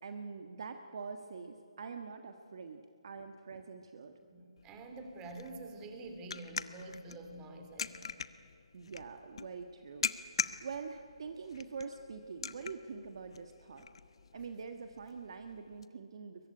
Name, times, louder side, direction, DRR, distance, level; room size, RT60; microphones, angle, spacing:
voice 1, 0.0-4.1 8.7-10.1 10.6-13.9 14.3-16.5, right 5 dB, 55° right, 7 dB, 1.5 m, -45 dB
voice 2, 4.3-8.1, right 2 dB, 15° right, 5 dB, 2.7 m, -47 dB
sound 1, 4.6-15.9, left 5 dB, 60° left, 1.0 m, -43 dB
22.5 x 22.0 x 9.9 m, 2.4 s
figure-of-eight pair, 150°, 3 cm